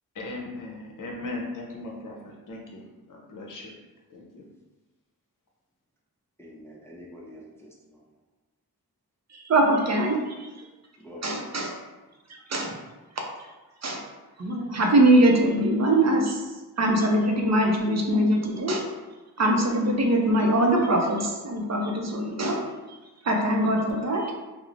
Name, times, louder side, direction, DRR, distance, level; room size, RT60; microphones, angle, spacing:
voice 1, 0.2-3.7 4.1-4.4, left 2 dB, 55° left, -1 dB, 0.6 m, -38 dB
voice 2, 6.4-8.0 11.0-11.3, equal, 5° left, -4 dB, 0.5 m, -46 dB
voice 3, 9.3-10.5 11.2-11.7 12.5-12.8 13.8-14.0 14.4-16.4 16.8-18.8 19.4-22.6 23.2-24.3, right 1 dB, 45° right, 1 dB, 0.5 m, -22 dB
2.9 x 2.0 x 2.5 m, 1.2 s
wide cardioid pair, 60°, 38 cm